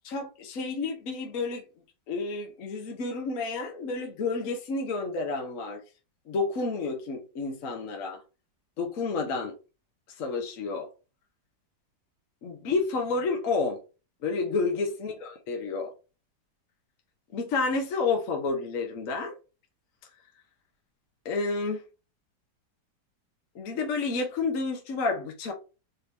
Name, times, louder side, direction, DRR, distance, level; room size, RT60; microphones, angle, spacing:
voice 1, 0.1-1.6 2.1-5.8 6.3-8.2 8.8-9.5 10.2-10.9 12.4-13.8 14.2-15.9 17.3-19.3 21.2-21.8 23.5-25.5, left 4 dB, 55° left, 1.2 m, -30 dB
4.1 x 2.9 x 3.3 m
omnidirectional pair, 1.9 m